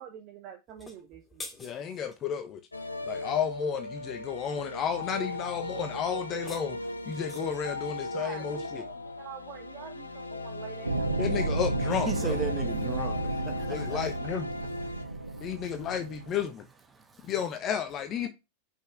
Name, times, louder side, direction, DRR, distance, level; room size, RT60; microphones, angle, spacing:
voice 1, 0.0-1.5 7.8-11.1 18.2-18.3, right 9 dB, 40° right, 1.1 m, -46 dB
sound 1, 0.7-2.2 6.2-7.7, left 2 dB, 15° left, 2.3 m, -47 dB
voice 2, 1.6-2.6 3.0-6.8 7.1-8.8 11.2-12.4 13.7-14.4 15.4-16.6 17.3-18.3, left 8 dB, 30° left, 1.0 m, -32 dB
sound 2, 2.7-15.0, left 2 dB, 80° left, 0.9 m, -38 dB
sound 3, 10.8-16.4, right 2 dB, 85° right, 0.7 m, -32 dB
voice 3, 11.9-16.0 16.3-16.4 16.9-17.3 18.2-18.3, right 4 dB, 15° right, 1.2 m, -40 dB
5.8 x 5.8 x 6.1 m
figure-of-eight pair, 90°, 0 cm